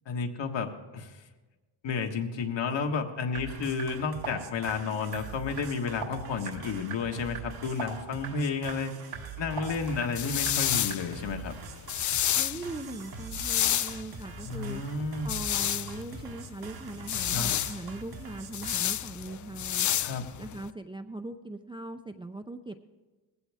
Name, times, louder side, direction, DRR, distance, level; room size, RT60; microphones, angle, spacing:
voice 1, 0.0-1.1 1.8-8.9 9.4-11.6 14.4-15.3 17.3-17.5 20.0-20.2, left 5 dB, 65° left, 4 dB, 1.7 m, -32 dB
sound 1, 3.3-18.8, right 7 dB, 50° right, 1.2 m, -44 dB
sound 2, 3.3-11.3, right 5 dB, 85° right, 3.5 m, -44 dB
sound 3, 9.7-20.7, left 11 dB, 40° left, 0.4 m, -31 dB
voice 2, 12.4-14.8 15.2-19.9 20.4-22.8, right 2 dB, 10° right, 6 dB, 0.5 m, -40 dB
19.5 x 16.0 x 3.5 m, 1.2 s
cardioid pair, 105°, 48 cm